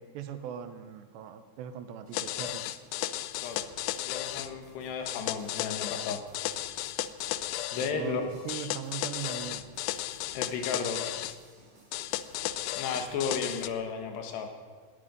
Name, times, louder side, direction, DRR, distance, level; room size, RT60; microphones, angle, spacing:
voice 1, 0.0-2.7 7.8-9.6, right 8 dB, 80° right, 9 dB, 3.0 m, -40 dB
sound 1, 2.1-4.5 5.1-7.9 8.5-11.4 11.9-13.7, left 15 dB, 90° left, 2.9 m, -34 dB
sound 2, 2.1-13.8, right 2 dB, 40° right, 4.8 m, -56 dB
voice 2, 4.0-6.2 7.7-8.2 8.5-8.7 10.4-11.2 12.7-14.5, left 5 dB, 70° left, 5 dB, 3.5 m, -34 dB
19.0 x 13.0 x 5.3 m, 1.5 s
omnidirectional pair, 5.2 m